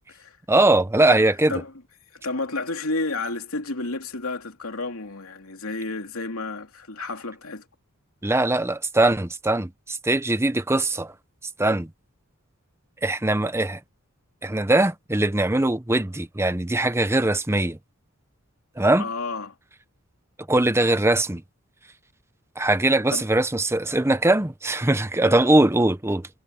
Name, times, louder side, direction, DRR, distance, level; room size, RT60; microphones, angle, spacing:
voice 1, 0.5-1.6 8.2-11.1 11.6-11.9 13.0-13.8 14.4-17.8 18.8-19.1 20.5-21.4 22.6-26.3, right 2 dB, 10° right, 0.9 m, -21 dB
voice 2, 2.2-7.6 19.0-19.5 23.1-23.3 25.2-25.4, left 3 dB, 80° left, 2.9 m, -31 dB
head